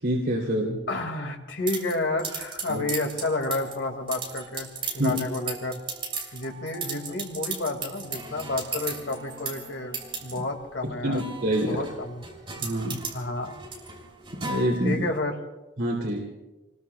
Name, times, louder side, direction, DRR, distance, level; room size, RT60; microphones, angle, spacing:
voice 1, 0.0-0.8 2.7-2.8 5.0-5.2 11.0-11.8 12.6-13.0 14.4-15.0 15.8-16.3, equal, 85° right, -2 dB, 3.1 m, -26 dB
voice 2, 0.9-4.7 4.9-5.8 6.3-11.2 11.6-12.2 13.1-13.5 14.8-15.4, left 2 dB, 80° left, 3 dB, 2.2 m, -30 dB
sound 1, 1.7-15.2, right 4 dB, 30° right, 3.4 m, -37 dB
29.5 x 21.0 x 2.3 m, 1.1 s
head